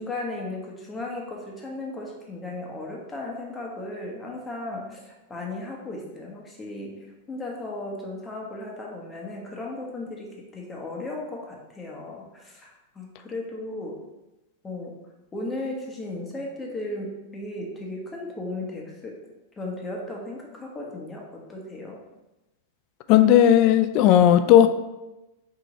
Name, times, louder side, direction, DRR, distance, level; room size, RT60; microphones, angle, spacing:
voice 1, 0.0-14.0 14.6-14.9 15.3-19.2 19.6-22.0, left 2 dB, 15° left, -1 dB, 1.1 m, -35 dB
voice 2, 23.1-24.7, left 10 dB, 45° left, 11 dB, 0.3 m, -15 dB
4.7 x 2.7 x 4.0 m, 1.0 s
hypercardioid pair, 125°, 0 cm